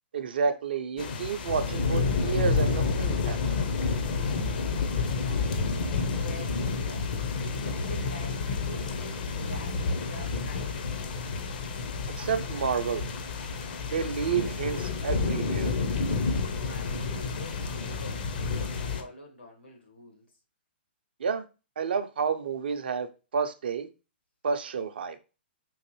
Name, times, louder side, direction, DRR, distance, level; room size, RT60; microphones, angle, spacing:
voice 1, 0.1-3.6 12.1-13.1 13.9-15.7 21.2-21.4 21.8-23.1 23.3-23.9 24.4-25.2, right 6 dB, 60° right, 0.5 m, -30 dB
sound 1, 1.0-19.0, left 4 dB, 50° left, 0.6 m, -29 dB
voice 2, 5.1-7.1 7.5-11.0 16.6-20.2, left 1 dB, 90° left, 1.6 m, -46 dB
3.8 x 2.6 x 3.0 m
figure-of-eight pair, 120°, 6 cm